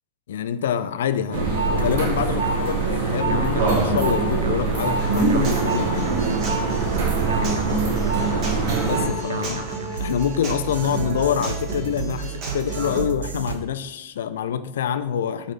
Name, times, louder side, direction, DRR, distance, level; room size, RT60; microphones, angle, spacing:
voice 1, 0.3-6.1 8.8-9.7 10.0-15.5, left 8 dB, 60° left, 12 dB, 0.4 m, -26 dB
sound 1, 1.3-9.1, right 4 dB, 55° right, 1.4 m, -23 dB
sound 2, 1.7-13.6, right 6 dB, 70° right, 0.6 m, -33 dB
Human voice / Acoustic guitar, 5.0-13.0, right 2 dB, 35° right, 2.0 m, -34 dB
7.5 x 3.7 x 4.1 m, 0.95 s
figure-of-eight pair, 90°, 0 cm